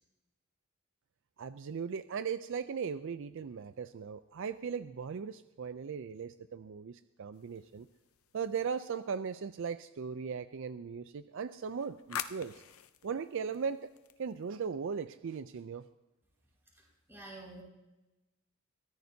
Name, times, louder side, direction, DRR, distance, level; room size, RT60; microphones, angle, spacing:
voice 1, 1.4-7.9 8.3-12.6 13.0-13.9 14.2-15.8, right 6 dB, 60° right, 12 dB, 0.4 m, -38 dB
sound 1, 7.3-9.1 11.4-14.6, left 9 dB, 75° left, 0.7 m, -47 dB
voice 2, 16.7-17.6, right 2 dB, 10° right, -4 dB, 5.3 m, -49 dB
22.5 x 14.5 x 2.8 m, 1.0 s
head